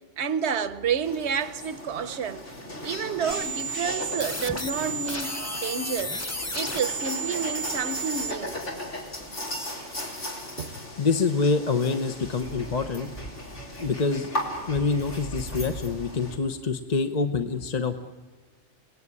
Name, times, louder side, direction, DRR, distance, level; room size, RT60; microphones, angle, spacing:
voice 1, 0.2-2.5 2.8-6.2 6.5-8.6 9.7-9.9 10.6-10.8, right 6 dB, 70° right, 1.3 m, -30 dB
sound 1, 1.0-16.3, left 1 dB, 85° left, 4.4 m, -37 dB
sound 2, 3.3-8.3, right 3 dB, 15° left, 1.3 m, -33 dB
voice 2, 11.0-13.1 13.8-14.3 14.7-18.1, left 4 dB, 40° left, 1.0 m, -26 dB
28.5 x 19.0 x 9.7 m
omnidirectional pair, 1.2 m